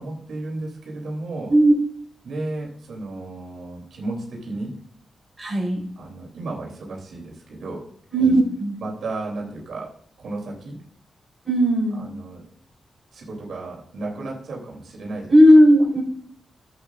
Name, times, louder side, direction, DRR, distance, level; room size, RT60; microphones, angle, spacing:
voice 1, 0.0-1.5 2.2-4.7 6.0-7.9 8.8-10.8 12.0-12.4 13.1-15.3, right 2 dB, 70° right, -2 dB, 3.0 m, -33 dB
voice 2, 5.4-5.8 8.1-8.8 11.4-12.0 15.3-16.0, equal, 15° right, -2 dB, 4.2 m, -15 dB
14.0 x 8.2 x 2.4 m, 0.62 s
wide cardioid pair, 110°, 0 cm